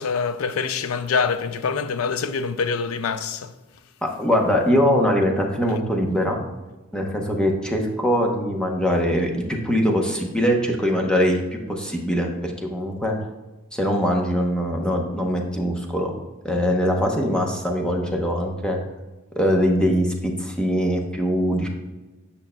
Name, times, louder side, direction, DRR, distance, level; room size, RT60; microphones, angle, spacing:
voice 1, 0.0-3.5, left 5 dB, 75° left, 0.4 m, -25 dB
voice 2, 4.0-6.4 6.9-11.4 11.7-13.2 13.7-16.1 16.4-18.8 19.4-21.7, equal, 5° left, 0.8 m, -22 dB
8.8 x 5.6 x 2.2 m
head